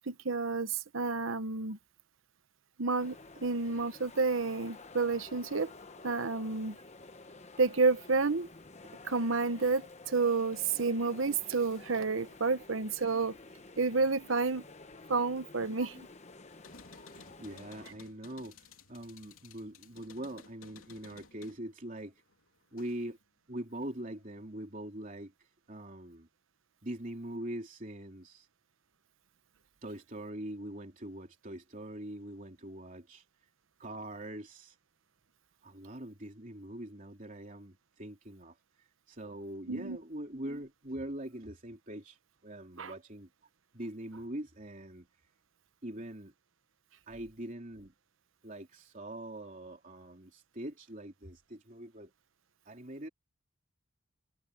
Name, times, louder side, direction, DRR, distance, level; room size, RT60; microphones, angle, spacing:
voice 1, 0.1-1.8 2.8-5.7 6.0-6.8 7.6-8.5 9.0-13.4 13.8-14.6 15.1-15.9 39.7-40.0 42.8-42.9, right 4 dB, 70° right, 1.0 m, -30 dB
sound 1, 3.0-17.9, left 3 dB, 35° left, 1.0 m, -52 dB
sound 2, 16.5-23.2 23.6-24.4, left 5 dB, 85° left, 3.2 m, -57 dB
voice 2, 17.1-22.1 22.7-23.2 23.5-26.3 26.8-28.5 29.8-33.2 33.8-34.8 35.6-43.3 43.7-45.1 45.8-46.3 47.1-47.9 48.4-52.1 52.6-53.1, right 1 dB, 40° right, 3.4 m, -43 dB
head